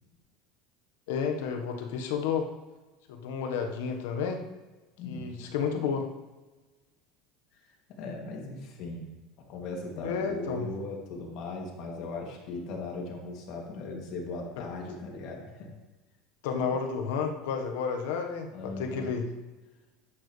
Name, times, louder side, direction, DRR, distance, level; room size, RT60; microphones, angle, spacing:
voice 1, 1.1-2.5 3.1-4.4 5.0-6.0 10.0-10.7 16.4-19.3, left 6 dB, 85° left, 4 dB, 1.4 m, -31 dB
voice 2, 5.0-5.5 8.0-9.1 9.5-15.7 18.5-19.1, left 3 dB, 60° left, -1 dB, 2.7 m, -38 dB
11.5 x 9.0 x 3.4 m, 1.2 s
supercardioid pair, 125°, 0 cm